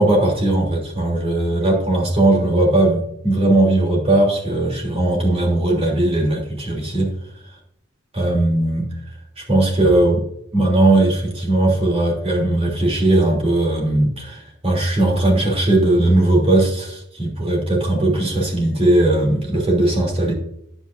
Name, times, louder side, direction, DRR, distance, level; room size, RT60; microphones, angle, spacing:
voice 1, 0.0-7.1 8.1-8.9 9.4-10.2 10.5-20.3, right 2 dB, 30° right, -1 dB, 3.0 m, -18 dB
10.5 x 8.1 x 2.6 m, 0.74 s
head